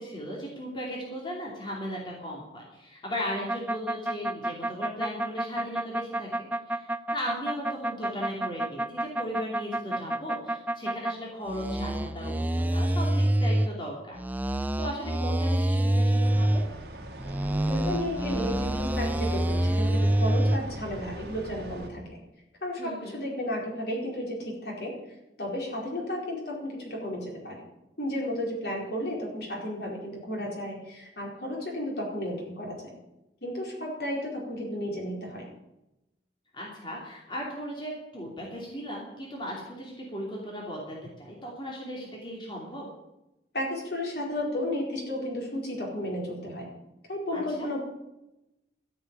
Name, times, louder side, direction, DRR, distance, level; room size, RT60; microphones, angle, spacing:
voice 1, 0.0-16.6 22.8-23.2 36.5-42.9 47.3-47.7, equal, 25° left, -3 dB, 2.8 m, -37 dB
sound 1, 3.5-11.2 11.5-13.7 14.2-16.7 17.2-20.6, right 1 dB, 10° right, 0.4 m, -27 dB
sound 2, 16.2-21.9, right 1 dB, 60° right, 2.6 m, -41 dB
voice 2, 17.7-22.2 22.6-24.9 25.4-27.6 28.0-32.9 33.4-35.4 43.5-46.7 47.1-47.8, left 1 dB, 60° left, -2 dB, 4.6 m, -33 dB
13.5 x 7.1 x 8.4 m, 0.92 s
head